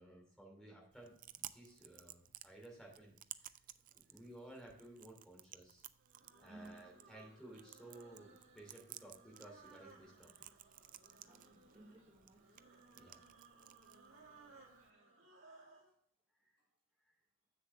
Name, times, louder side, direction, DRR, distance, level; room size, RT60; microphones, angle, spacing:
voice 1, 0.0-3.5 4.1-5.8 6.4-10.4 12.9-13.2 16.4-16.6 17.0-17.2, right 1 dB, 5° left, -2 dB, 2.7 m, -57 dB
Chewing mastication, 0.9-14.9, right 13 dB, 40° right, 0.3 m, -57 dB
voice 2, 1.6-2.2 3.6-4.1 5.8-6.9 11.2-12.6 16.6-16.7, right 1 dB, 20° right, -2 dB, 1.1 m, -61 dB
sound 1, 6.0-15.9, right 3 dB, 70° right, 2.3 m, -62 dB
7.6 x 6.9 x 3.3 m, 0.65 s
head